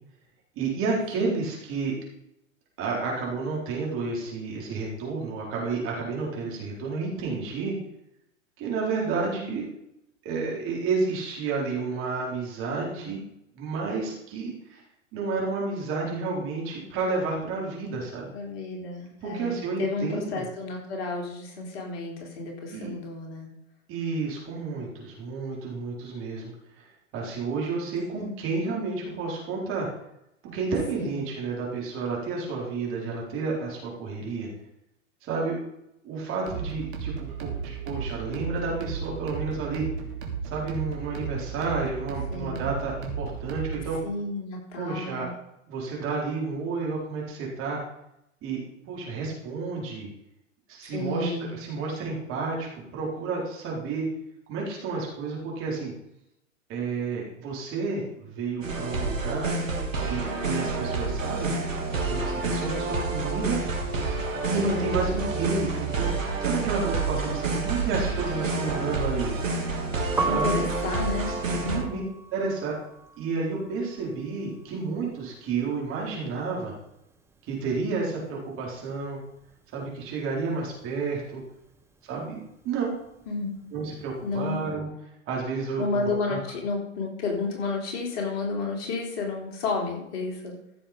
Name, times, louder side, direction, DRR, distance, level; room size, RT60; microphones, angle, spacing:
voice 1, 0.6-1.9 2.8-7.8 8.6-9.8 10.2-13.2 13.5-14.8 15.1-18.3 19.2-20.4 22.7-22.9 23.9-26.5 26.8-26.9 27.1-29.9 30.4-34.5 35.2-35.6 36.0-39.8 40.4-44.0 44.8-45.3 45.7-47.8 48.4-50.1 50.7-54.0 54.5-55.9 56.7-59.6 60.1-61.5 62.1-63.6 64.5-66.1 66.4-69.3 70.2-70.6 71.4-72.0 72.3-72.8 73.2-76.7 77.4-79.2 79.7-81.4 82.0-83.0 83.7-84.9 85.3-86.4, right 4 dB, 35° right, -3 dB, 4.7 m, -31 dB
voice 2, 18.3-23.5 28.1-28.3 30.9-31.3 42.3-42.7 44.0-45.3 50.9-51.6 64.6-65.0 70.2-71.8 83.3-83.5 84.2-84.6 85.8-90.6, left 3 dB, 50° left, 0 dB, 3.7 m, -31 dB
sound 1, 36.5-44.0, right 6 dB, 55° right, 3.2 m, -34 dB
sound 2, 58.6-71.8, right 3 dB, 80° right, 2.8 m, -28 dB
Piano, 70.0-76.0 76.2-77.8 78.1-84.5, right 3 dB, 5° right, 1.1 m, -37 dB
14.5 x 7.1 x 5.3 m, 0.81 s
hypercardioid pair, 110°, 38 cm